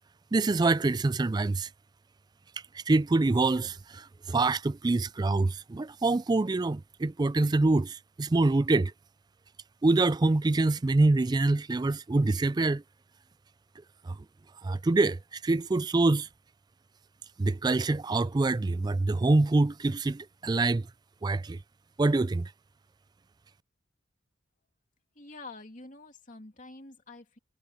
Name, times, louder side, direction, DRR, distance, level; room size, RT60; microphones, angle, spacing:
voice 1, 0.3-1.7 2.7-8.9 9.8-12.8 14.1-14.2 14.6-16.3 17.4-20.9 21.2-21.6 22.0-22.5, right 2 dB, 20° right, 0.3 m, -25 dB
voice 2, 25.1-27.4, left 3 dB, 40° left, 2.9 m, -47 dB
head